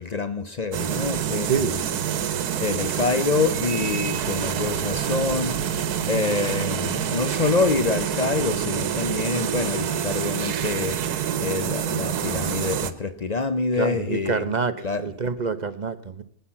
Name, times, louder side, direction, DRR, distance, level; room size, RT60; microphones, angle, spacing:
voice 1, 0.0-1.8 2.6-5.6 6.1-11.0 11.4-14.5 14.8-15.1, left 4 dB, 60° left, 0.4 m, -26 dB
sound 1, 0.7-12.9, right 9 dB, 75° right, 1.4 m, -27 dB
voice 2, 13.8-16.2, right 5 dB, 40° right, 0.6 m, -26 dB
18.5 x 9.2 x 7.2 m
omnidirectional pair, 1.7 m